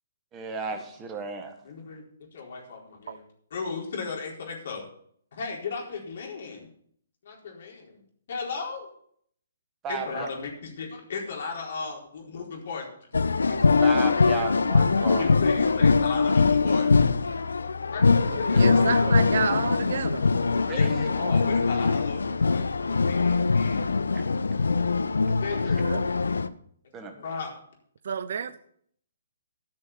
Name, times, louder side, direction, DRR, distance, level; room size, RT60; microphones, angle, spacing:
voice 1, 0.3-1.6 9.8-10.3 13.5-15.3 20.7-21.1 24.1-24.3 24.5-24.9 26.9-27.2, right 4 dB, 20° right, 5 dB, 1.6 m, -35 dB
voice 2, 1.6-2.0 2.3-3.2 3.5-4.8 5.3-6.7 7.2-8.0 8.3-8.9 9.9-12.8 15.2-16.9 17.9-19.4 20.7-23.8 25.4-25.9 27.0-27.5, left 4 dB, 55° left, 0 dB, 4.4 m, -35 dB
sound 1, 13.1-26.5, left 4 dB, 75° left, 0.6 m, -22 dB
voice 3, 18.3-20.3 25.8-26.1 28.0-28.6, right 7 dB, 60° right, 15 dB, 0.8 m, -30 dB
13.5 x 6.4 x 7.0 m, 0.64 s
figure-of-eight pair, 135°, 0 cm